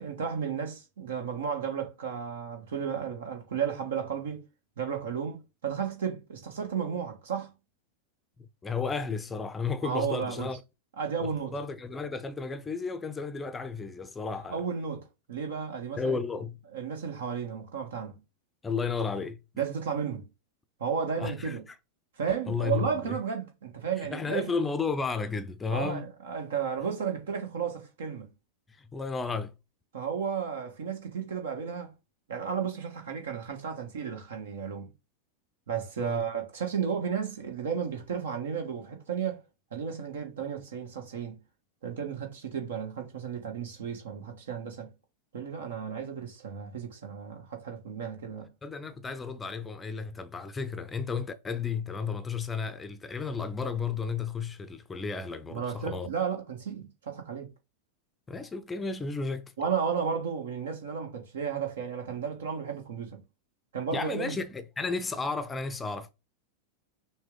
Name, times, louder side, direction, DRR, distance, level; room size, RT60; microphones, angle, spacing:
voice 1, 0.0-4.4 4.8-7.5 9.8-10.5 11.0-11.5 14.3-16.2 16.7-18.2 19.6-20.3 20.8-21.6 22.2-24.5 25.7-28.3 29.9-31.9 32.3-34.9 35.7-39.4 39.7-41.4 41.8-44.9 45.3-48.5 55.5-57.5 59.6-63.2 63.7-64.4, right 7 dB, 60° right, 1.3 m, -33 dB
voice 2, 8.6-10.6 11.2-14.6 16.0-16.6 18.6-19.4 21.2-21.7 22.5-23.2 24.0-26.1 28.7-29.5 36.0-36.2 48.6-56.1 58.3-59.5 63.9-66.1, left 5 dB, 15° left, 0.6 m, -33 dB
6.1 x 2.2 x 3.7 m
figure-of-eight pair, 90°, 0 cm